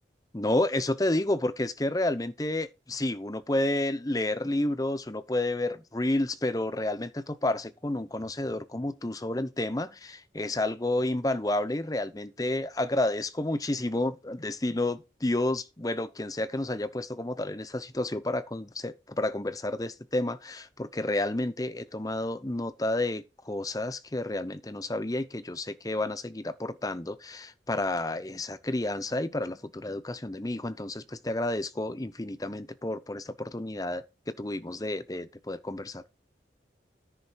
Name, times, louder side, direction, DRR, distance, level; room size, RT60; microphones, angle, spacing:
voice 1, 0.3-34.0 34.4-36.0, left 1 dB, 20° left, 0.7 m, -30 dB
10.0 x 7.1 x 4.6 m
head